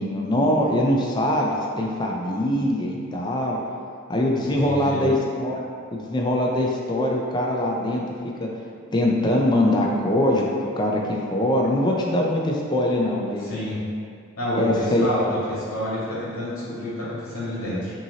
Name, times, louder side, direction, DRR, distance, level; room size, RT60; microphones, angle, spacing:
voice 1, 0.0-3.6 4.1-5.6 5.9-8.0 8.4-8.5 8.9-10.5 10.8-11.0 11.3-13.4 14.6-15.1, left 1 dB, 20° left, -1 dB, 0.4 m, -22 dB
voice 2, 4.6-5.0 13.4-13.8 14.4-17.9, left 1 dB, 90° left, -10 dB, 1.4 m, -28 dB
5.6 x 2.8 x 2.8 m, 2.2 s
head